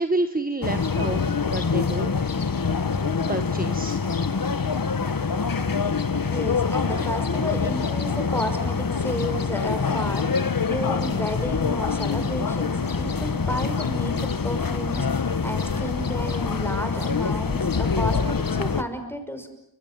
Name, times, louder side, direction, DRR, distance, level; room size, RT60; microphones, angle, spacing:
voice 1, 0.0-2.2 3.3-4.0, right 2 dB, 25° right, 8 dB, 1.6 m, -28 dB
sound 1, 0.6-18.8, left 5 dB, 65° left, 1.6 m, -25 dB
voice 2, 6.3-19.5, equal, 5° left, 7 dB, 5.8 m, -32 dB
29.5 x 25.5 x 7.7 m, 0.73 s
wide cardioid pair, 80°, 37 cm